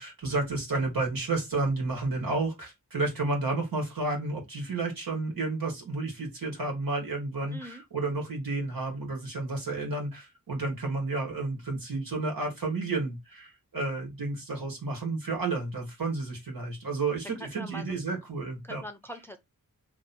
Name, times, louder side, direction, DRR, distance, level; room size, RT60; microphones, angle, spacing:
voice 1, 0.0-18.8, right 3 dB, 85° right, 1.7 m, -31 dB
voice 2, 7.5-7.8 17.4-18.0 18.6-19.4, equal, 5° left, 0.6 m, -42 dB
2.9 x 2.8 x 4.2 m
wide cardioid pair, 70°, 34 cm